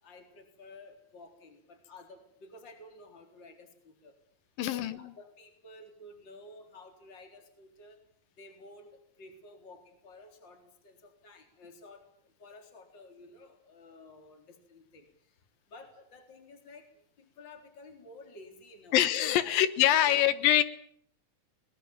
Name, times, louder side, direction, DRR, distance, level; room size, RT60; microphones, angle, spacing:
voice 1, 0.0-4.1 4.7-8.0 8.4-8.9 9.2-15.3 15.7-16.9 17.2-19.0 19.4-19.6 20.0-20.2, left 2 dB, 30° left, 5 dB, 4.3 m, -52 dB
voice 2, 4.6-5.0 18.9-20.6, left 12 dB, 90° left, 14 dB, 3.0 m, -24 dB
21.0 x 20.5 x 9.0 m, 0.63 s
omnidirectional pair, 4.0 m